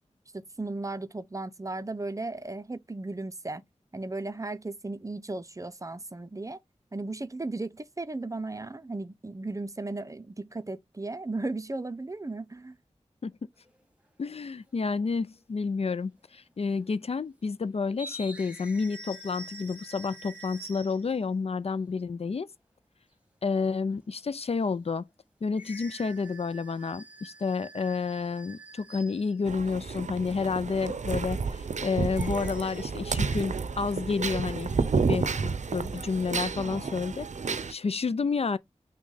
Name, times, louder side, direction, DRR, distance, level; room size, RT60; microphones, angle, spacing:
voice 1, 0.3-3.6 3.9-6.6 6.9-12.8, right 2 dB, 30° right, 0.5 m, -36 dB
sound 1, 13.6-13.9 15.0-15.1 16.1-16.5 16.8-16.9 17.9-21.2 25.6-29.3 32.1-32.9, right 1 dB, 10° right, 1.3 m, -46 dB
voice 2, 14.2-22.5 23.4-25.0 25.4-34.7 35.0-37.3 37.7-38.6, left 4 dB, 60° left, 0.4 m, -30 dB
sound 2, 29.5-37.7, right 5 dB, 85° right, 0.6 m, -31 dB
6.1 x 2.2 x 3.9 m
wide cardioid pair, 70°, 12 cm